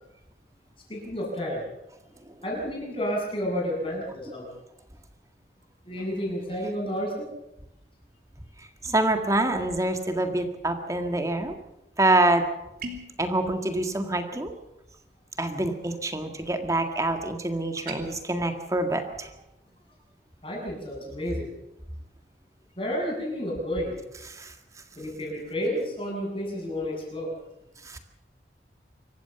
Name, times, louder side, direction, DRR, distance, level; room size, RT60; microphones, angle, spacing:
voice 1, 0.9-1.6 2.4-4.5 5.9-7.3 20.4-21.5 22.8-23.9 25.0-27.3, equal, 30° left, -1 dB, 7.8 m, -31 dB
voice 2, 8.8-11.6 12.0-12.4 13.2-14.5 15.4-19.3 24.3-24.5 27.8-28.0, right 2 dB, 20° right, 6 dB, 1.8 m, -26 dB
sound 1, 12.8-13.2 17.8-18.0, right 2 dB, 55° right, 3.3 m, -37 dB
26.0 x 14.5 x 7.0 m, 0.90 s
head